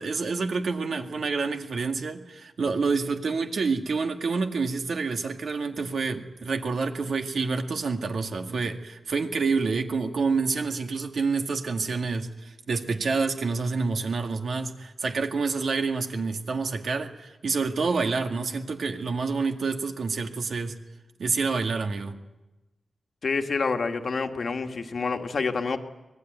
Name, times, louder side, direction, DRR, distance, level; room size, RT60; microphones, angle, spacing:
voice 1, 0.0-20.7 21.2-22.2, right 4 dB, 70° right, 4 dB, 2.0 m, -28 dB
voice 2, 23.2-25.8, left 4 dB, 55° left, 5 dB, 1.7 m, -27 dB
25.0 x 19.5 x 9.4 m, 1.1 s
wide cardioid pair, 150°, 0 cm